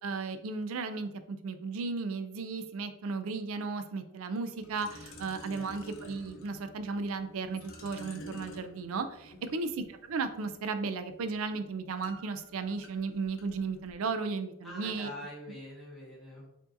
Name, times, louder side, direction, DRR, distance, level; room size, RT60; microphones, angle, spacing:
voice 1, 0.0-15.1, right 4 dB, 70° right, 9 dB, 0.4 m, -35 dB
sound 1, 4.5-13.9, equal, 65° left, 0.6 m, -51 dB
voice 2, 14.6-16.5, left 1 dB, ahead, -6 dB, 1.3 m, -45 dB
4.6 x 2.7 x 2.5 m, 0.78 s
head